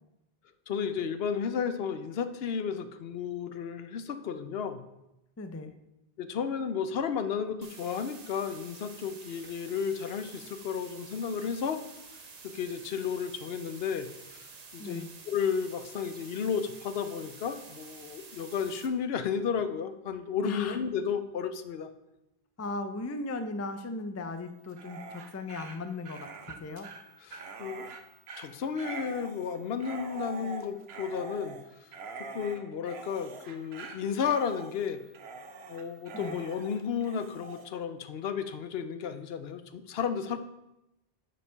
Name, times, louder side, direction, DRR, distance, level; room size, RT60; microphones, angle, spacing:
voice 1, 0.7-4.8 6.2-11.8 12.4-14.5 14.7-21.9 27.2-27.9 28.4-31.6 32.3-35.0 35.7-40.4, left 7 dB, 75° left, 11 dB, 0.9 m, -33 dB
voice 2, 5.4-5.7 14.8-15.1 20.4-20.8 22.6-26.9 36.1-36.4, left 2 dB, 25° left, 9 dB, 0.4 m, -37 dB
sound 1, 7.6-18.9, right 4 dB, 40° right, 0.9 m, -49 dB
Dog, 24.6-37.7, right 4 dB, 80° right, 1.1 m, -44 dB
8.2 x 5.2 x 5.6 m, 0.92 s
omnidirectional pair, 1.0 m